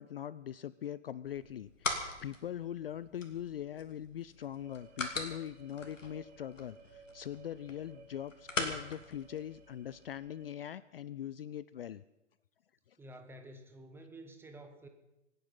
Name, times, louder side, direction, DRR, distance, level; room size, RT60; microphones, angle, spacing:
voice 1, 0.0-12.0 12.9-13.0, left 10 dB, 50° left, 18 dB, 0.5 m, -42 dB
sound 1, 1.2-10.2, left 3 dB, 80° left, 2.6 m, -42 dB
sound 2, 4.5-10.5, right 6 dB, 55° right, 1.9 m, -59 dB
voice 2, 13.0-14.9, right 1 dB, 5° right, 6 dB, 1.1 m, -51 dB
26.5 x 9.3 x 5.6 m, 0.95 s
figure-of-eight pair, 125°, 38 cm